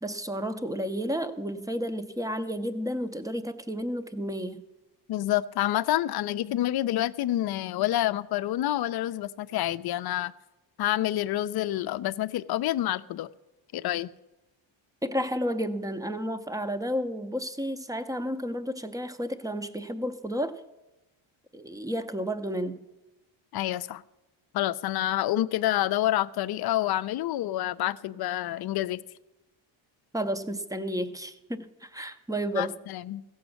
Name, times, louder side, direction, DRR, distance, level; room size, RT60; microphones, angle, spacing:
voice 1, 0.0-4.6 15.0-20.6 21.5-22.9 30.1-32.8, equal, 10° right, 10 dB, 0.6 m, -32 dB
voice 2, 5.1-10.3 10.8-13.3 13.7-14.1 23.5-24.0 24.5-29.0 32.6-33.2, left 14 dB, 55° left, 15 dB, 0.5 m, -28 dB
15.5 x 7.1 x 6.3 m, 1.0 s
cardioid pair, 120°, 48 cm